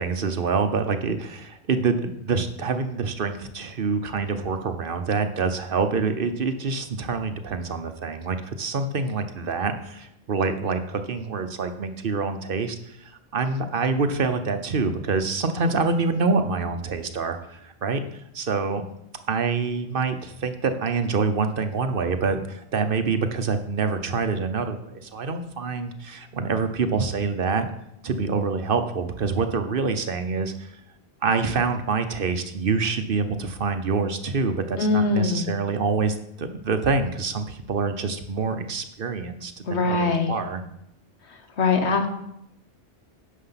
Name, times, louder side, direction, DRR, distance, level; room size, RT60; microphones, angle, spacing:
voice 1, 0.0-13.0 13.3-18.0 18.3-18.8 19.3-27.7 28.0-30.7 31.2-40.6, right 4 dB, 55° right, 9 dB, 1.0 m, -26 dB
voice 2, 34.8-35.5 39.7-40.4 41.6-42.1, left 3 dB, 75° left, 7 dB, 1.5 m, -22 dB
9.8 x 6.7 x 5.8 m, 0.79 s
omnidirectional pair, 1.1 m